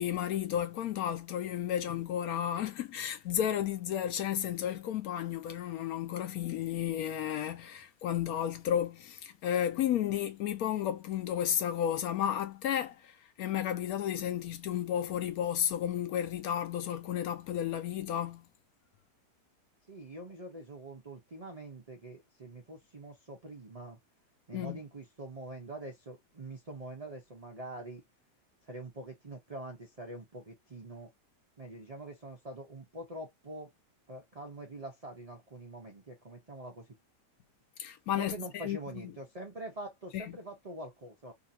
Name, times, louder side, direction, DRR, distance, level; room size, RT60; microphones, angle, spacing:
voice 1, 0.0-18.5 24.5-24.8 37.8-38.8 39.0-39.1 40.1-40.4, left 10 dB, 70° left, 1.0 m, -33 dB
voice 2, 19.9-24.0 24.5-28.0 28.7-31.1 31.6-33.7 34.1-37.0 38.1-41.3, right 1 dB, 75° right, 0.3 m, -45 dB
2.8 x 2.5 x 2.6 m
omnidirectional pair, 1.8 m